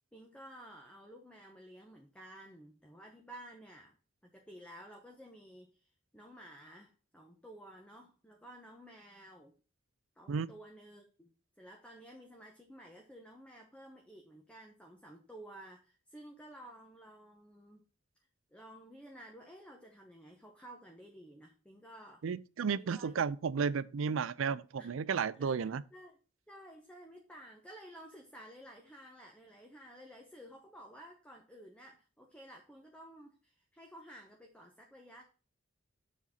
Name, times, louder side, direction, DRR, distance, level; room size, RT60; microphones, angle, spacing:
voice 1, 0.1-3.9 4.2-9.5 10.2-11.3 11.6-17.8 18.5-22.2 22.8-23.1 24.8-24.9 25.1-26.2 26.5-35.2, right 1 dB, 5° left, 0.9 m, -53 dB
voice 2, 22.2-25.8, right 6 dB, 85° right, 0.4 m, -33 dB
7.4 x 4.1 x 5.6 m
head